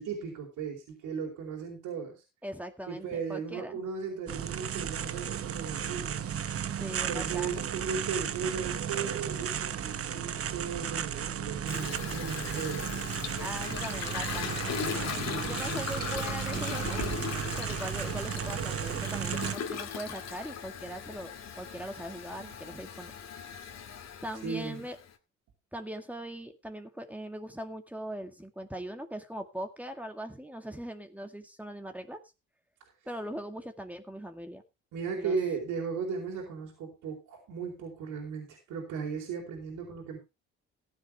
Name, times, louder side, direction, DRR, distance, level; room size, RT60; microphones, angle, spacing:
voice 1, 0.0-2.2 2.9-6.3 7.1-12.9 15.2-15.6 24.4-24.8 34.9-40.2, right 5 dB, 85° right, -1 dB, 4.3 m, -36 dB
voice 2, 2.4-3.8 6.7-7.6 13.4-14.6 15.4-17.0 17.6-23.1 24.2-25.0 25.7-32.2 33.1-34.6 35.1-35.4, right 1 dB, 5° right, 5 dB, 2.0 m, -40 dB
sound 1, 4.3-19.6, right 8 dB, 50° right, 1.0 m, -34 dB
Toilet flush, 11.7-25.1, left 7 dB, 60° left, 2.3 m, -38 dB
15.5 x 10.0 x 3.5 m, 0.27 s
cardioid pair, 90°, 30 cm